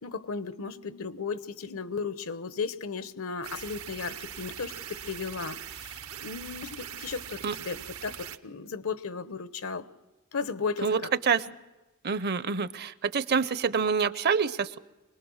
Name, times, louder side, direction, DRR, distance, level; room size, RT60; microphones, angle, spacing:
voice 1, 0.0-9.9 10.3-11.1 11.5-11.6, left 5 dB, 85° left, 13 dB, 1.0 m, -35 dB
sound 1, 3.4-8.4, right 9 dB, 80° right, 0.9 m, -41 dB
voice 2, 10.8-11.5 12.0-14.8, right 6 dB, 50° right, 16 dB, 0.6 m, -27 dB
24.5 x 19.5 x 6.4 m, 1.1 s
head